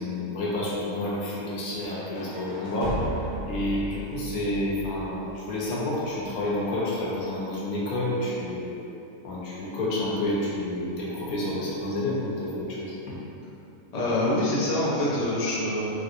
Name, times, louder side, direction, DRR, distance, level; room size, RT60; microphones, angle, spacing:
voice 1, 0.0-3.0 3.5-8.9 9.2-13.2, left 1 dB, 70° left, -5 dB, 1.1 m, -29 dB
sound 1, 1.8-5.7, equal, 50° right, 0.5 m, -36 dB
voice 2, 13.9-15.9, left 1 dB, 55° left, -8 dB, 0.4 m, -25 dB
3.3 x 2.7 x 2.4 m, 2.8 s
omnidirectional pair, 1.6 m